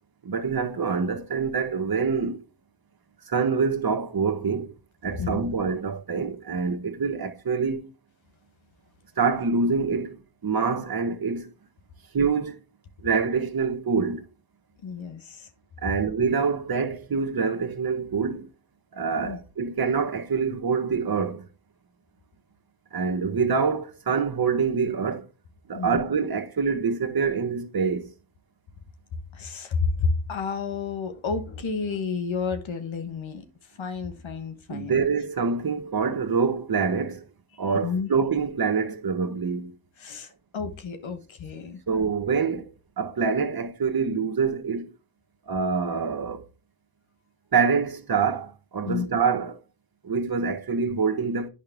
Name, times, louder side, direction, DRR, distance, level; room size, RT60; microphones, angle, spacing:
voice 1, 0.2-2.4 3.3-4.7 5.0-7.9 9.2-10.2 10.4-11.5 12.1-12.6 13.0-14.2 15.8-18.5 18.9-21.5 22.9-25.3 25.7-28.1 34.7-37.2 37.6-39.7 41.9-42.7 43.0-44.9 45.5-46.4 47.5-49.6 50.0-51.5, right 5 dB, 50° right, 1.2 m, -25 dB
voice 2, 14.8-15.5 19.2-19.4 25.7-26.0 29.3-33.4 33.8-35.0 37.8-38.1 40.0-41.8 48.8-49.1, left 5 dB, 85° left, 1.2 m, -30 dB
9.4 x 5.2 x 3.4 m
cardioid pair, 45°, 46 cm